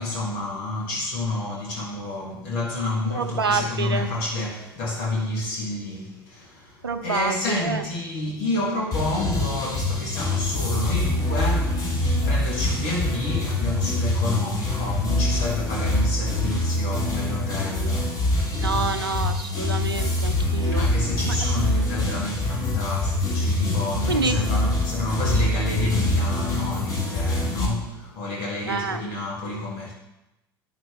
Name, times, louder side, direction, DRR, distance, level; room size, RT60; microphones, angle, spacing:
voice 1, 0.0-18.3 19.2-19.3 20.7-29.9, left 2 dB, 60° left, 1.6 m, -29 dB
voice 2, 3.1-4.1 6.8-7.8 18.5-20.9 21.2-21.3 24.1-24.4 28.7-29.0, right 4 dB, 85° right, 0.6 m, -27 dB
sound 1, 8.9-27.7, left 2 dB, 30° left, 2.5 m, -25 dB
10.5 x 6.0 x 3.5 m
figure-of-eight pair, 75°, 12 cm